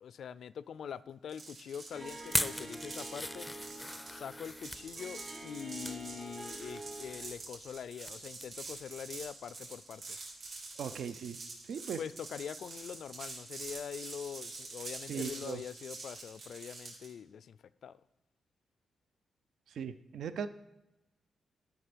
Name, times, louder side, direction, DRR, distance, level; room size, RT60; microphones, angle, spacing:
voice 1, 0.0-3.5 4.1-10.2 12.0-18.0, left 8 dB, 70° left, 18 dB, 0.3 m, -44 dB
sound 1, 1.3-17.1, right 3 dB, 60° right, 3.3 m, -46 dB
Harp, 1.9-7.4, right 1 dB, 20° right, 1.2 m, -47 dB
sound 2, 2.2-4.8 5.5-6.0 6.4-8.1 8.4-8.6 9.0-9.1, left 1 dB, 5° left, 0.4 m, -39 dB
voice 2, 10.8-11.4 11.6-12.0 15.1-15.6 19.7-20.5, right 7 dB, 75° right, 12 dB, 0.5 m, -38 dB
12.0 x 5.9 x 5.1 m, 0.97 s
cardioid pair, 120°, 0 cm